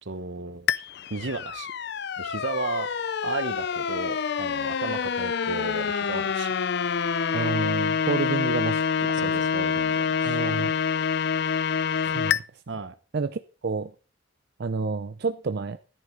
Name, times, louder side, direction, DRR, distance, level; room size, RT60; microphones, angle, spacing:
voice 1, 0.0-1.7 2.2-2.9 3.2-6.5 9.1-10.4 12.1-12.3 12.7-12.9, right 3 dB, 80° right, 1.1 m, -34 dB
sound 1, 0.7-12.4, left 6 dB, 60° left, 0.5 m, -27 dB
voice 2, 7.3-9.1 10.2-10.7 12.1-12.4 13.1-13.9 14.6-15.8, right 4 dB, 60° right, 0.6 m, -29 dB
12.5 x 10.5 x 3.9 m
head